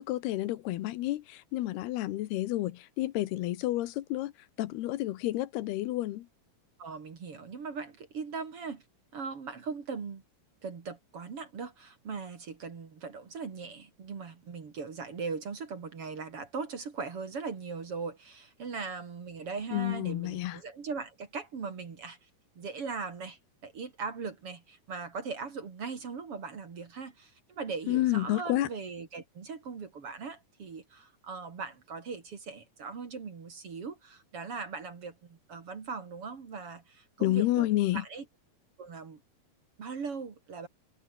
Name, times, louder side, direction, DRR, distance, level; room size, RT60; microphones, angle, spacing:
voice 1, 0.0-4.3 4.6-6.3 19.7-20.6 27.9-28.7 37.2-38.0, left 15 dB, 85° left, 3.1 m, -30 dB
voice 2, 6.8-8.8 9.1-10.2 10.6-22.2 22.6-37.7 37.9-38.2 38.8-39.2 39.8-40.7, right 5 dB, 40° right, 2.9 m, -39 dB
omnidirectional pair, 4.5 m